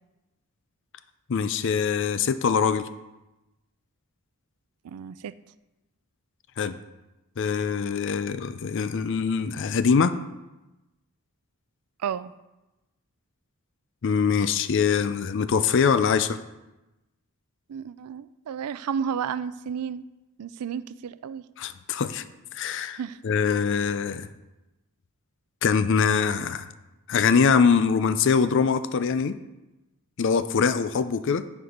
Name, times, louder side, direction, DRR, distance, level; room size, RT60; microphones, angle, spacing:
voice 1, 1.3-2.9 6.6-6.7 7.4-10.2 14.0-16.4 21.6-22.2 22.5-23.0 23.2-24.3 25.6-26.7 27.1-29.4 30.2-31.4, left 6 dB, 55° left, 13 dB, 0.4 m, -23 dB
voice 2, 4.8-5.3 12.0-12.3 17.7-20.0 20.4-21.5 22.9-23.2, right 7 dB, 90° right, 16 dB, 0.4 m, -32 dB
9.7 x 4.4 x 5.1 m, 1.0 s
head